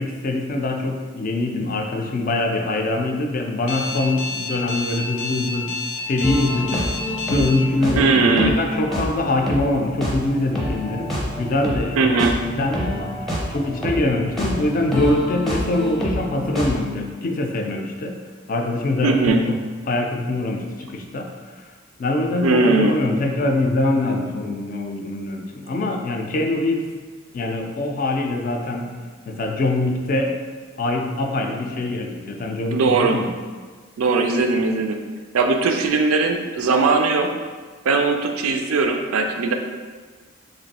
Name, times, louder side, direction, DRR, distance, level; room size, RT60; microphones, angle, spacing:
voice 1, 0.0-5.7 6.1-6.9 7.3-11.1 11.4-12.1 12.5-18.2 18.5-19.6 19.9-21.6 22.0-26.9 27.3-28.9 29.3-30.4 30.8-33.3, left 2 dB, 40° left, 3 dB, 0.3 m, -23 dB
Alarm, 3.7-7.5, left 3 dB, 90° left, 0.6 m, -29 dB
sound 1, 6.2-16.8, equal, ahead, 0.6 m, -28 dB
voice 2, 8.0-8.5 12.0-12.3 19.0-19.4 22.4-23.0 32.7-33.2 34.0-35.0 35.3-37.4 37.9-39.5, right 3 dB, 90° right, 5 dB, 0.4 m, -19 dB
3.1 x 2.5 x 4.0 m, 1.5 s
head